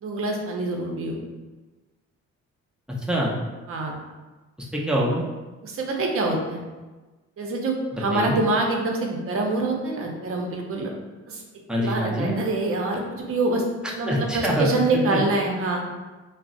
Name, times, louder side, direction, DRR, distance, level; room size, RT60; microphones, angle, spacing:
voice 1, 0.0-1.2 3.7-4.0 5.6-6.6 7.4-10.9 11.3-11.4 11.8-13.6 14.0-15.8, right 2 dB, 45° right, 1 dB, 0.6 m, -25 dB
voice 2, 2.9-3.4 4.6-5.2 7.9-8.4 11.7-12.4 13.8-14.7 14.9-15.2, equal, 5° right, -4 dB, 0.5 m, -25 dB
2.4 x 2.0 x 3.7 m, 1.2 s
cardioid pair, 90°, 30 cm